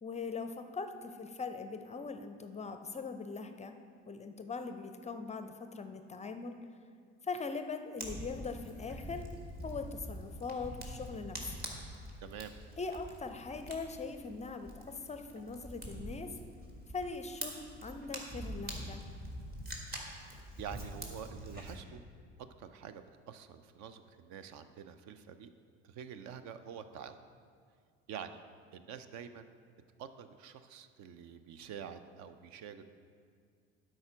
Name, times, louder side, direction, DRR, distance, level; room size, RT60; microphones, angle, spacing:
voice 1, 0.0-3.7 4.1-6.6 7.2-9.2 9.6-11.6 12.8-16.3 16.9-19.0, left 4 dB, 20° left, 8 dB, 0.5 m, -41 dB
Fire, 8.0-21.8, equal, 25° right, 1.8 m, -45 dB
voice 2, 12.2-12.5 20.6-22.0 22.6-25.5 25.8-27.2 28.1-28.4 28.7-29.5 30.0-32.8, right 8 dB, 50° right, 11 dB, 0.6 m, -47 dB
12.0 x 4.8 x 5.0 m, 2.2 s
figure-of-eight pair, 60°, 37 cm